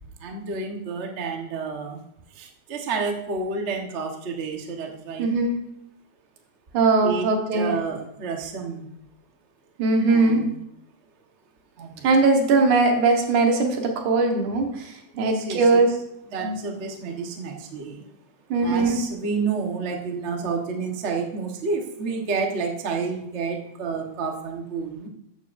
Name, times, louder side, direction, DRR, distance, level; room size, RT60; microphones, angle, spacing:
voice 1, 0.2-2.0 2.3-5.3 7.0-7.3 7.5-8.9 10.1-10.5 11.8-12.1 15.1-16.0 16.3-18.0 18.6-25.1, right 4 dB, 60° right, 2 dB, 0.7 m, -30 dB
voice 2, 5.2-5.6 6.7-7.7 9.8-10.4 12.0-14.7 15.2-15.9 16.4-16.6 18.5-19.0, right 3 dB, 90° right, 2 dB, 2.9 m, -20 dB
13.0 x 9.2 x 2.6 m, 0.79 s
omnidirectional pair, 3.4 m